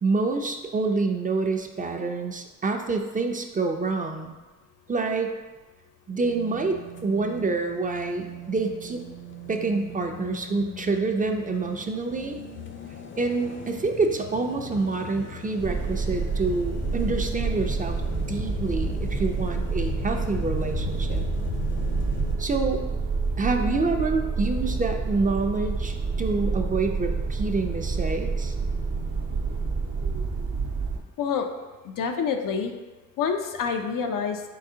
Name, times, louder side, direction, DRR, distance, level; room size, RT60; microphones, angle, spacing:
voice 1, 0.0-4.3 4.9-5.3 6.1-9.0 9.5-12.4 13.2-21.2 22.4-22.8 23.4-28.5, right 3 dB, 25° right, 4 dB, 0.4 m, -27 dB
sound 1, 6.2-22.4, left 5 dB, 40° left, 0.5 m, -38 dB
sound 2, 15.6-31.0, right 4 dB, 70° right, 0.7 m, -28 dB
voice 2, 31.8-32.7 33.2-34.4, left 6 dB, 90° left, 5 dB, 0.5 m, -27 dB
4.1 x 3.8 x 2.7 m, 1.3 s
cardioid pair, 70°, 31 cm